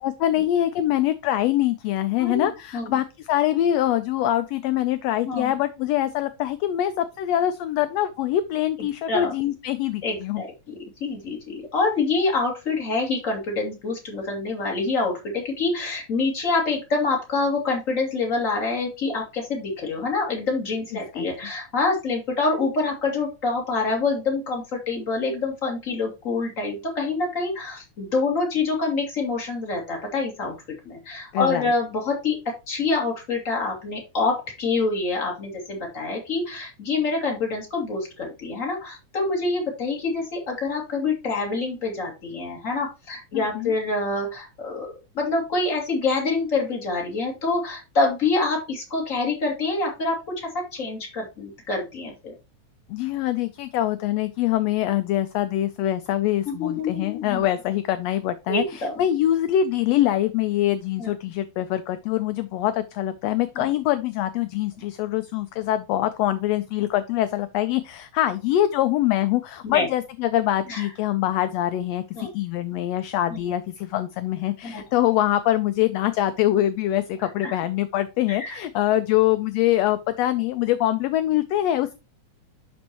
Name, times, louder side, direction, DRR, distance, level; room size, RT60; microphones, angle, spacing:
voice 1, 0.0-10.4 21.1-21.3 31.3-31.7 43.3-43.7 52.9-81.9, left 13 dB, 80° left, 11 dB, 1.6 m, -24 dB
voice 2, 2.2-3.0 5.2-5.5 8.8-9.3 10.0-30.5 30.8-52.3 56.5-57.4 58.5-59.0 61.0-61.1 63.6-63.7 69.6-69.9 70.7-70.9 72.2-72.3 73.3-73.5 74.6-74.8 77.4-77.5 78.4-78.6, left 3 dB, 30° left, 0 dB, 2.4 m, -26 dB
11.5 x 4.3 x 2.9 m, 0.27 s
omnidirectional pair, 3.3 m